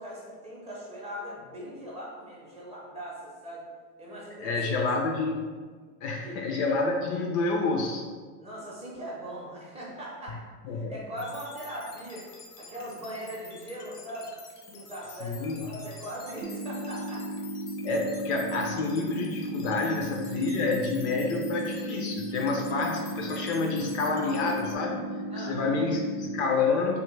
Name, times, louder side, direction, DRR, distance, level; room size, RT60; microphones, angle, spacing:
voice 1, 0.0-3.7 4.0-4.9 6.2-6.4 8.4-12.3 12.6-14.3 14.7-17.3 25.3-25.7, equal, 15° right, -5 dB, 0.6 m, -40 dB
voice 2, 4.4-5.5 6.0-8.0 10.7-10.9 15.2-15.7 17.8-25.1 25.3-27.0, left 3 dB, 45° left, 1 dB, 0.5 m, -28 dB
sound 1, 11.2-24.7, left 4 dB, 80° left, 0.8 m, -48 dB
sound 2, 16.4-26.4, right 1 dB, 90° right, 0.5 m, -35 dB
3.4 x 2.1 x 3.1 m, 1.5 s
hypercardioid pair, 110°, 48 cm